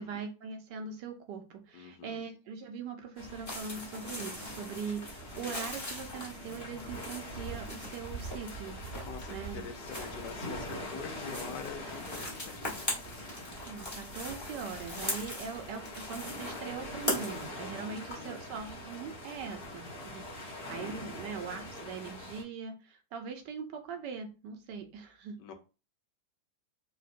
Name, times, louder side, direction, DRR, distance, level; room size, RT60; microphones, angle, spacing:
voice 1, 0.0-8.8 9.3-9.7 13.7-25.4, right 6 dB, 75° right, 1.2 m, -41 dB
voice 2, 1.7-2.2 8.9-12.8 17.8-18.4 25.4-25.5, left 6 dB, 75° left, 1.2 m, -45 dB
sound 1, 3.2-22.4, left 1 dB, 40° left, 1.1 m, -43 dB
sound 2, 3.5-17.5, left 1 dB, 15° left, 0.8 m, -41 dB
sound 3, 9.9-12.2, left 6 dB, 30° right, 0.6 m, -57 dB
3.8 x 2.2 x 2.5 m
omnidirectional pair, 1.9 m